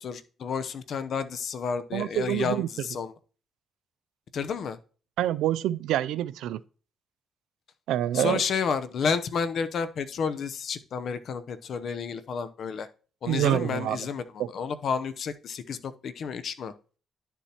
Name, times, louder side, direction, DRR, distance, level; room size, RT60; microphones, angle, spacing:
voice 1, 0.0-3.1 4.3-4.8 8.1-12.9 13.2-16.7, left 6 dB, 60° left, 0.7 m, -31 dB
voice 2, 1.9-2.7 5.2-6.6 7.9-8.4 13.3-14.0 14.4-14.5, right 12 dB, 90° right, 0.3 m, -26 dB
11.0 x 7.0 x 2.9 m
cardioid pair, 90°, 0 cm